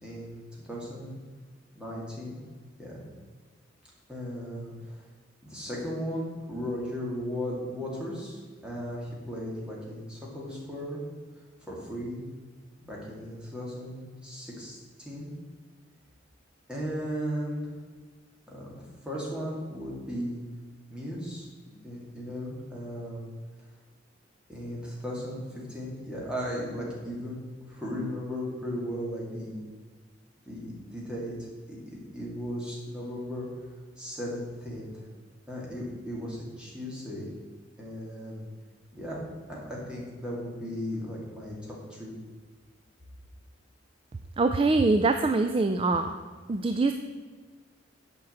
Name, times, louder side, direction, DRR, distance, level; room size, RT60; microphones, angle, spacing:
voice 1, 0.0-1.2 1.7-2.4 2.8-3.0 4.1-5.0 5.4-11.0 11.6-12.2 12.8-15.3 16.7-17.7 18.5-20.4 20.9-23.3 24.5-27.4 27.7-29.6 30.5-31.3 31.7-33.5 34.0-35.0 35.5-37.3 37.8-38.4 38.9-42.1, equal, 5° right, -5 dB, 2.4 m, -36 dB
voice 2, 44.4-46.1 46.5-46.9, right 3 dB, 25° right, 7 dB, 0.3 m, -24 dB
8.4 x 5.3 x 7.8 m, 1.5 s
head